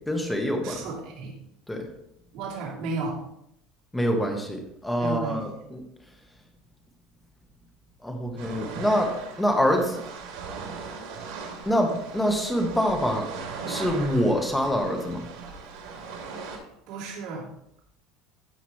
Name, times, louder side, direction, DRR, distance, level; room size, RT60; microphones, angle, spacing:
voice 1, 0.1-0.8 1.7-1.9 3.9-5.8 8.0-10.0 11.6-13.3 13.7-15.3, equal, 5° left, 3 dB, 1.2 m, -25 dB
voice 2, 0.6-1.3 2.3-3.2 5.0-5.4 16.9-17.5, right 3 dB, 50° right, -5 dB, 3.2 m, -33 dB
sound 1, 8.4-16.6, right 5 dB, 75° right, 2.5 m, -38 dB
13.5 x 5.0 x 3.2 m, 0.78 s
cardioid pair, 160°, 0 cm